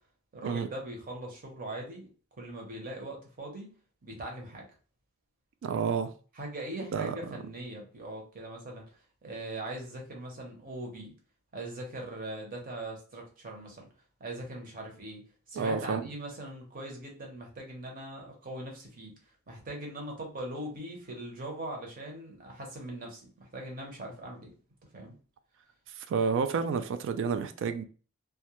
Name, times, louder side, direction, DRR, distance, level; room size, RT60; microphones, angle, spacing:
voice 1, 0.3-2.1 2.4-3.7 4.0-4.7 6.3-11.1 11.5-13.9 14.2-15.2 15.5-19.1 19.5-24.5 24.9-25.1, right 1 dB, 45° right, 0.8 m, -41 dB
voice 2, 5.6-6.1 6.8-7.3 15.5-16.1 26.0-27.8, right 5 dB, 60° right, 0.3 m, -30 dB
2.3 x 2.1 x 2.8 m
head